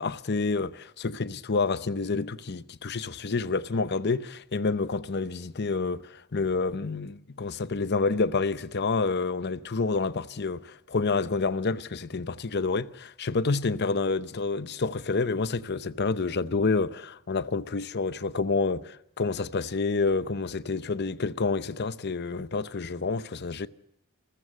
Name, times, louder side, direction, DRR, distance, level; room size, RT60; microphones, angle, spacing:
voice 1, 0.0-23.7, left 4 dB, 50° left, 0.7 m, -28 dB
28.5 x 14.5 x 7.6 m
head